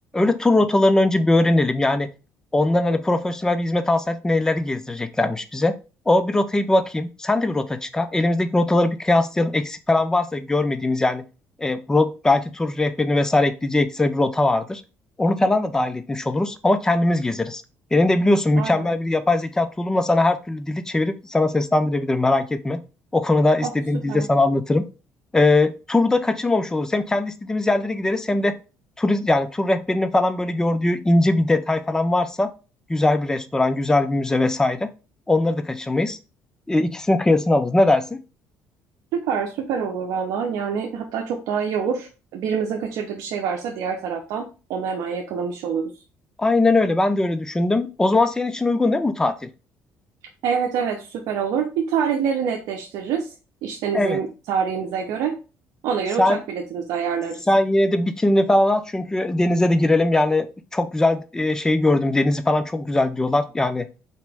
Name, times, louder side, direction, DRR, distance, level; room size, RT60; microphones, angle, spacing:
voice 1, 0.1-2.1 2.5-5.8 6.1-11.2 11.6-14.8 15.2-17.6 17.9-22.8 23.1-24.9 25.3-28.5 29.0-32.5 32.9-34.9 35.3-36.2 36.7-38.2 46.4-49.5 53.9-54.2 56.2-56.4 57.5-63.9, left 2 dB, 10° left, 10 dB, 0.4 m, -20 dB
voice 2, 18.6-19.0 23.6-23.7 24.1-24.3 39.1-44.4 44.7-45.9 50.4-53.3 53.6-55.4 55.8-57.4, right 7 dB, 80° right, 1 dB, 0.6 m, -26 dB
4.2 x 3.0 x 3.4 m, 0.32 s
cardioid pair, 105°, 6 cm